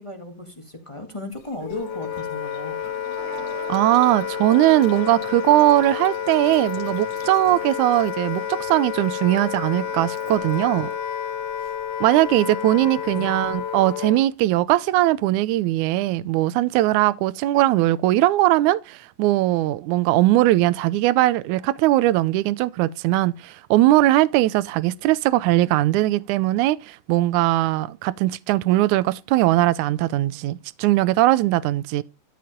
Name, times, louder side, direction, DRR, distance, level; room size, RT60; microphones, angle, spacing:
voice 1, 0.0-2.8 12.8-13.3, left 1 dB, 15° left, 1.0 m, -36 dB
sound 1, 1.3-14.0, left 4 dB, 45° left, 3.4 m, -49 dB
Wind instrument woodwind instrument, 1.6-14.3, left 9 dB, 75° left, 2.1 m, -30 dB
Musical instrument, 3.1-11.0, right 8 dB, 55° right, 2.2 m, -45 dB
voice 2, 3.7-10.9 12.0-32.0, right 16 dB, 80° right, 1.9 m, -20 dB
13.5 x 5.0 x 5.1 m
omnidirectional pair, 3.9 m